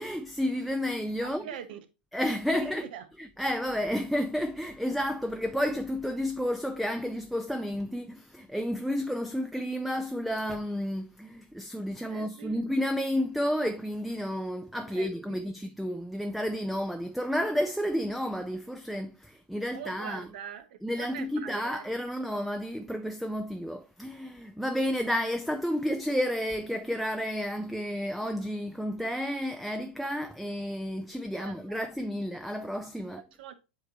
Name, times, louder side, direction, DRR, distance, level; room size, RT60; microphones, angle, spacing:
voice 1, 0.0-1.4 2.1-2.9 3.2-20.3 20.8-33.2, equal, ahead, 0.5 m, -31 dB
voice 2, 1.2-1.9 2.5-3.1 12.1-12.6 14.9-15.5 19.7-22.0 31.4-31.8 33.3-33.5, right 9 dB, 65° right, 1.0 m, -43 dB
7.9 x 3.2 x 3.9 m
hypercardioid pair, 100°, 6 cm